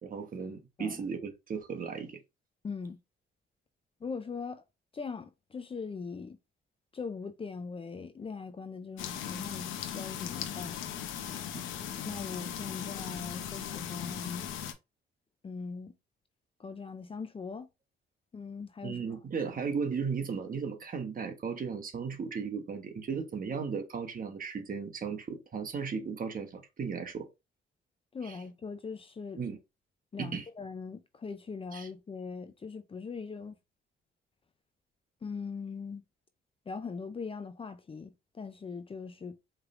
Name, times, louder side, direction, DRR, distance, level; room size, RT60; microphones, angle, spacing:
voice 1, 0.0-2.2 18.8-27.3 28.2-28.4 29.4-29.6 30.2-30.5 31.7-31.9, right 5 dB, 45° right, 1.1 m, -36 dB
voice 2, 2.6-3.0 4.0-4.6 4.9-6.4 6.9-10.9 12.1-14.5 15.4-15.9 16.6-17.7 18.3-19.2 28.1-29.4 30.1-33.6 35.2-36.0 36.7-39.4, left 5 dB, 30° left, 0.5 m, -40 dB
sound 1, 9.0-14.7, left 9 dB, 90° left, 0.7 m, -38 dB
4.7 x 3.3 x 2.5 m
cardioid pair, 90°, 20 cm